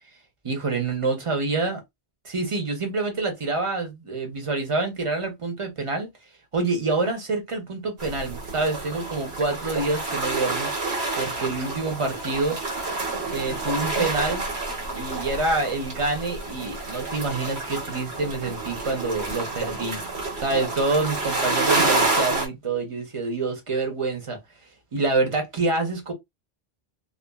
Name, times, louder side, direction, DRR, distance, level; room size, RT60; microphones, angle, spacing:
voice 1, 0.4-1.8 2.2-6.1 6.5-12.6 13.3-14.5 14.9-20.0 20.4-24.4 24.9-26.1, right 3 dB, 35° right, 0.8 m, -27 dB
sound 1, 8.0-22.5, right 2 dB, 80° right, 1.3 m, -28 dB
2.5 x 2.4 x 2.3 m
omnidirectional pair, 1.1 m